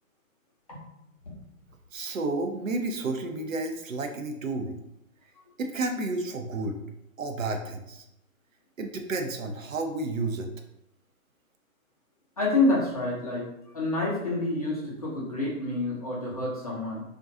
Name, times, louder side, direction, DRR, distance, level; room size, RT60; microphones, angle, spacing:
voice 1, 1.9-4.8 5.6-6.8 7.2-8.0 8.8-10.5, right 2 dB, 65° right, 4 dB, 0.5 m, -31 dB
voice 2, 12.4-13.5 13.7-17.0, left 2 dB, 25° left, -6 dB, 0.5 m, -27 dB
2.4 x 2.2 x 2.6 m, 0.83 s
figure-of-eight pair, 140°, 42 cm